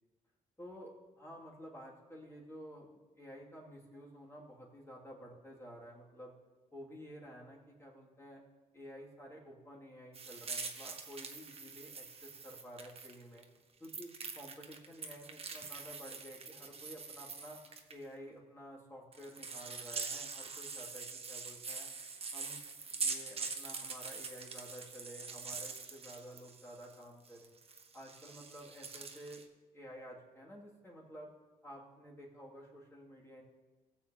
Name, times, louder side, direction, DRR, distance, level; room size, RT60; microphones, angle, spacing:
voice 1, 0.6-2.9 3.2-6.3 6.7-8.4 8.7-13.4 13.8-17.6 17.9-21.9 22.3-22.6 22.9-27.5 27.9-29.4 29.7-31.3 31.6-33.4, equal, 20° left, -4 dB, 2.5 m, -51 dB
sound 1, 10.1-13.4 13.8-17.9 19.1-26.9 27.2-29.4, right 4 dB, 45° right, 1.0 m, -44 dB
17.5 x 7.3 x 2.9 m, 1.3 s
cardioid pair, 85°, 14 cm